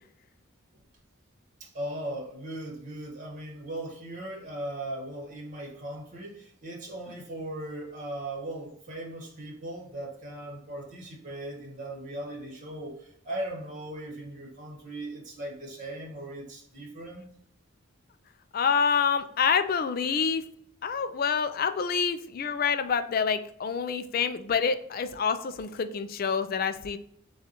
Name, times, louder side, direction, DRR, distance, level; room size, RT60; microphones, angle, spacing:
voice 1, 1.6-17.2, right 1 dB, 40° right, 0 dB, 1.4 m, -38 dB
voice 2, 18.5-20.4 20.8-27.0, left 6 dB, 45° left, 10 dB, 0.4 m, -27 dB
7.0 x 2.4 x 2.9 m, 0.68 s
head